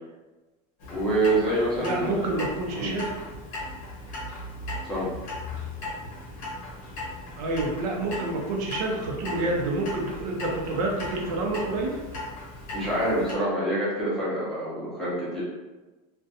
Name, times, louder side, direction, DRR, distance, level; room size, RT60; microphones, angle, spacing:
Clock, 0.8-13.3, left 2 dB, 40° left, 0.7 m, -38 dB
voice 1, 0.9-2.3 2.7-3.0 4.8-5.1 12.7-15.4, right 1 dB, ahead, -10 dB, 0.7 m, -26 dB
voice 2, 1.8-3.1 7.4-12.0, right 2 dB, 75° right, 0 dB, 0.6 m, -28 dB
2.5 x 2.2 x 2.6 m, 1.2 s
supercardioid pair, 160°, 21 cm